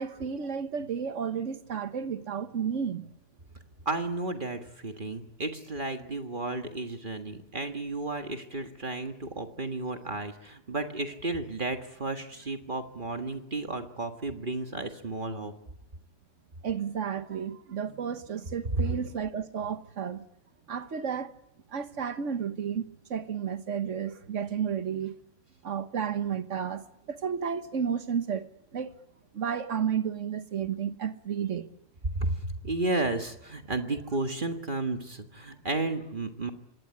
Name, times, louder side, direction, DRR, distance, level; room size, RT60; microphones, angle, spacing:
voice 1, 0.0-3.1 16.6-20.2 20.7-21.3 21.7-22.8 23.1-25.1 25.6-26.8 27.1-28.5 28.7-28.9 29.3-31.7, right 7 dB, 90° right, 1.6 m, -32 dB
voice 2, 3.9-15.5 18.7-18.9 32.2-32.3 32.6-36.5, right 2 dB, 45° right, 1.8 m, -33 dB
26.5 x 19.5 x 9.8 m
omnidirectional pair, 1.2 m